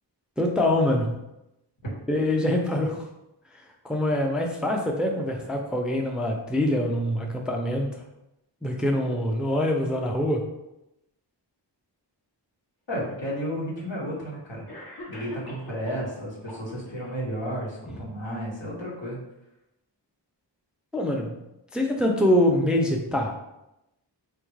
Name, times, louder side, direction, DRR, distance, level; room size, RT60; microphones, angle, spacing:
voice 1, 0.4-1.2 2.1-3.0 3.5-8.0 8.6-10.5 20.9-21.4 21.7-23.4, left 1 dB, ahead, 2 dB, 0.4 m, -24 dB
voice 2, 12.9-14.6 15.1-19.2, equal, 80° left, -5 dB, 1.3 m, -32 dB
Cough, 14.7-16.1 16.5-17.1, left 2 dB, 55° left, 1.0 m, -42 dB
3.6 x 2.3 x 3.1 m, 0.90 s
wide cardioid pair, 45°, 45 cm